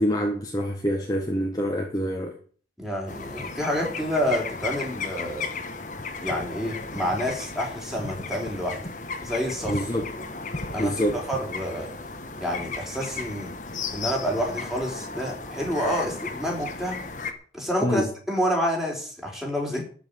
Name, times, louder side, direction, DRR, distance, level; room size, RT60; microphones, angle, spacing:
voice 1, 0.0-2.3 9.7-10.1 10.8-11.2 17.8-18.1, equal, 20° left, 1.6 m, -26 dB
voice 2, 2.8-5.5 6.2-8.8 9.2-9.8 10.7-11.9 12.4-13.5 13.9-17.0 17.5-19.8, equal, ahead, 4.6 m, -28 dB
sound 1, 3.1-17.3, left 4 dB, 45° left, 1.5 m, -35 dB
13.0 x 6.1 x 9.2 m
head